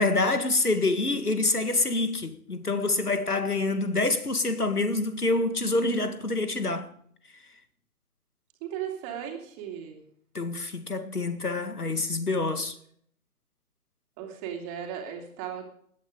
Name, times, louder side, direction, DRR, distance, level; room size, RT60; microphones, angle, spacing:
voice 1, 0.0-6.9 10.3-12.7, left 2 dB, 85° left, 1.9 m, -26 dB
voice 2, 8.6-10.0 14.2-15.7, right 9 dB, 20° right, 2.7 m, -36 dB
19.5 x 12.0 x 3.8 m
figure-of-eight pair, 135°, 44 cm